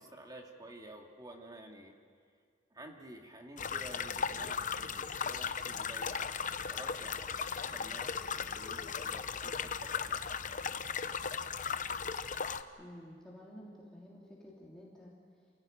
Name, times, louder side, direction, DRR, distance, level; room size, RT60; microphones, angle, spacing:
voice 1, 0.0-1.9 2.7-6.2 6.7-7.4 7.7-10.4, right 1 dB, 25° right, 2 dB, 2.4 m, -51 dB
sound 1, 3.6-12.6, left 6 dB, 45° left, 0.8 m, -37 dB
voice 2, 12.8-15.1, equal, 5° left, -6 dB, 3.3 m, -51 dB
28.5 x 16.5 x 9.1 m, 2.1 s
head